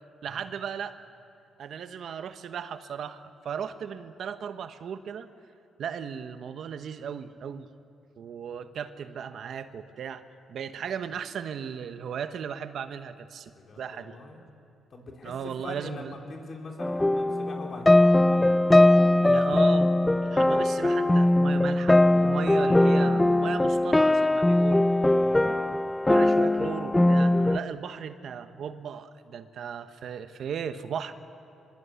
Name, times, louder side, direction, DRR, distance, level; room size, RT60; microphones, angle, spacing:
voice 1, 0.2-1.0 1.6-5.3 5.8-7.7 8.2-13.5 13.8-14.1 15.2-16.1 19.2-19.9 20.2-24.9 26.1-31.1, right 7 dB, 65° right, 10 dB, 1.0 m, -36 dB
voice 2, 13.5-14.4 14.9-18.5 25.2-25.4, left 3 dB, 45° left, 1 dB, 4.4 m, -43 dB
sound 1, 16.8-27.6, left 1 dB, 10° left, 0.6 m, -21 dB
24.5 x 21.5 x 8.3 m, 2.7 s
cardioid pair, 90°, 0 cm